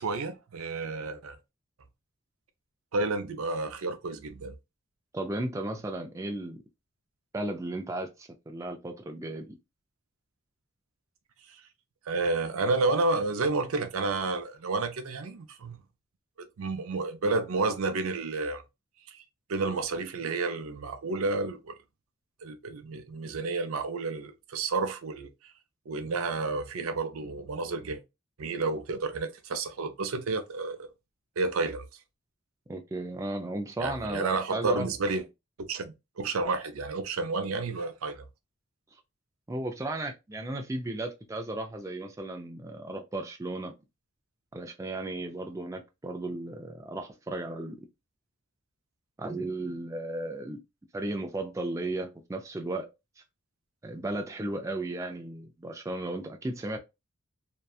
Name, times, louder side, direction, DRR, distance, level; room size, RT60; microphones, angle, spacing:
voice 1, 0.0-1.4 2.9-4.5 11.5-11.6 12.1-15.8 16.6-18.6 19.1-19.2 19.5-21.7 22.4-25.3 25.9-28.0 28.4-30.9 31.4-31.8 33.8-35.2 35.6-38.2, right 3 dB, 80° right, 0.5 m, -30 dB
voice 2, 5.1-6.6 7.3-9.6 32.7-34.9 39.5-43.7 44.5-47.8 49.2-50.6 50.9-52.9 53.8-56.8, right 2 dB, 15° right, 0.3 m, -35 dB
2.7 x 2.2 x 2.3 m
head